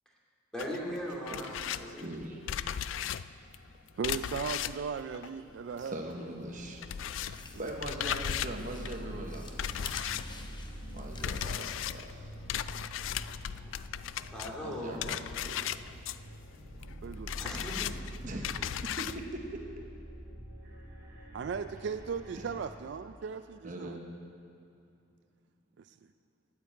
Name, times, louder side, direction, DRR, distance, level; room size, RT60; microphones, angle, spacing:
voice 1, 0.5-2.1 14.3-14.9 17.4-17.9, equal, 5° left, -5 dB, 2.5 m, -38 dB
sound 1, 0.6-6.1 6.4-19.2, left 10 dB, 85° left, 0.3 m, -37 dB
voice 2, 1.9-2.4 4.8-4.9 5.8-6.8 7.1-9.5 10.9-12.2 14.6-15.6 18.2-18.5 18.8-19.6 23.6-24.1, right 1 dB, 40° right, 1 dB, 1.0 m, -41 dB
voice 3, 4.0-6.0 7.5-7.7 17.0-17.3 21.3-24.0 25.8-25.9, right 6 dB, 65° right, 11 dB, 0.3 m, -37 dB
sound 2, 6.4-22.6, right 1 dB, 15° right, 2.8 m, -46 dB
sound 3, 6.7-12.3, left 3 dB, 25° left, 0.7 m, -49 dB
9.4 x 9.0 x 8.7 m, 2.6 s
head